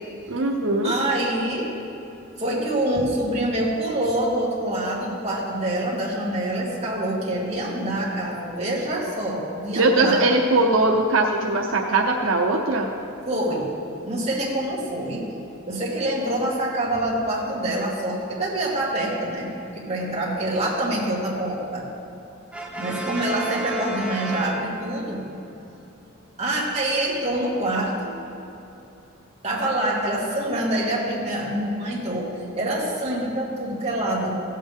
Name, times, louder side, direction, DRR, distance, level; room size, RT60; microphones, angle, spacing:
voice 1, 0.3-0.9 9.7-12.9, right 2 dB, 85° right, 1 dB, 0.7 m, -20 dB
voice 2, 0.8-1.7 2.4-10.2 13.3-13.7 14.0-15.3 15.7-21.8 22.8-25.2 26.4-28.1 29.4-32.3 32.5-34.4, right 1 dB, 35° right, -5 dB, 2.2 m, -26 dB
Brass instrument, 22.5-25.2, right 1 dB, 5° right, 0.8 m, -32 dB
15.0 x 7.6 x 3.6 m, 2.9 s
head